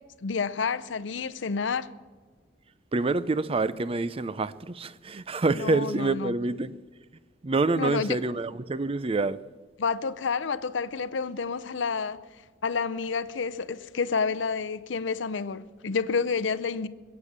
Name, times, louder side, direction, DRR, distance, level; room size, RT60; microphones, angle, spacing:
voice 1, 0.2-1.9 5.5-6.3 7.7-8.2 9.8-12.2 12.6-16.9, left 5 dB, 80° left, 0.6 m, -29 dB
voice 2, 2.9-6.8 7.4-9.4, right 3 dB, 30° right, 0.5 m, -27 dB
21.5 x 8.3 x 7.4 m
head